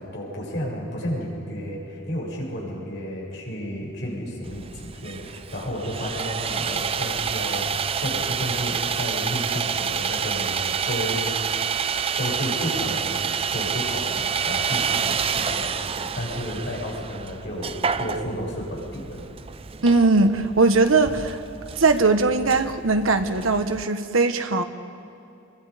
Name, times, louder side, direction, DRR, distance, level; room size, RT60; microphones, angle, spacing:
voice 1, 0.0-11.3 12.2-19.2, equal, 55° left, -3 dB, 7.1 m, -32 dB
Sawing, 4.4-23.8, right 7 dB, 30° right, 0.4 m, -28 dB
voice 2, 19.8-21.4 21.7-24.6, right 3 dB, 85° right, 7 dB, 1.3 m, -20 dB
28.0 x 23.5 x 5.1 m, 2.7 s
head